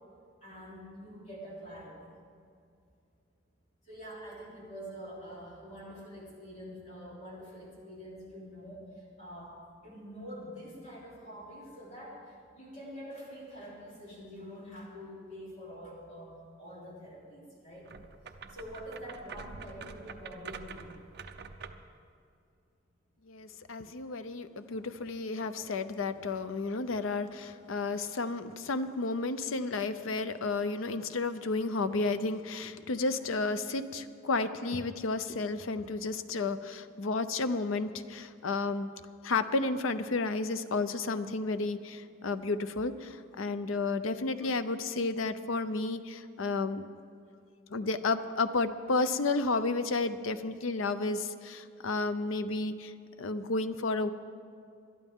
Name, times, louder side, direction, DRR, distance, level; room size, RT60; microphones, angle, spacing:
voice 1, 0.4-2.1 3.8-9.5 9.8-17.9 18.5-21.0, equal, 35° left, -5 dB, 3.4 m, -46 dB
sound 1, 17.8-21.9, right 5 dB, 55° right, 0.6 m, -46 dB
voice 2, 23.2-38.9 39.2-46.8 47.7-52.9 53.2-54.1, left 3 dB, 90° left, 11 dB, 0.6 m, -32 dB
21.0 x 12.0 x 3.7 m, 2.4 s
head